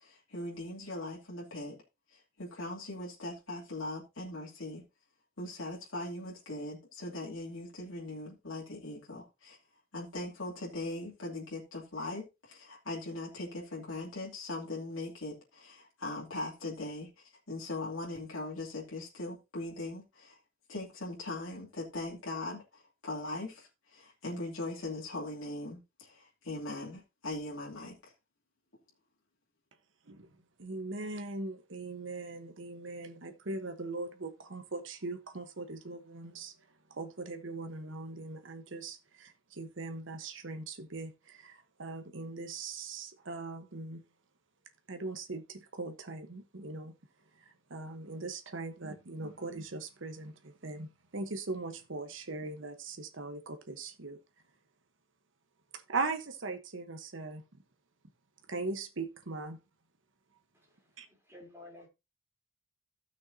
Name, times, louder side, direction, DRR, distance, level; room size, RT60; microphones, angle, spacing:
voice 1, 0.0-1.8 2.1-4.8 5.4-9.6 9.9-20.4 20.7-28.1, left 2 dB, 85° left, 2.8 m, -40 dB
voice 2, 30.6-36.5 37.0-39.3 39.6-44.0 44.9-46.9 47.7-50.3 50.6-50.9 51.1-54.2 55.9-57.4 58.5-59.6 61.0-61.1, right 3 dB, 65° right, 1.1 m, -40 dB
voice 3, 61.0-61.9, left 2 dB, 15° right, 3.5 m, -52 dB
15.0 x 6.4 x 2.8 m
head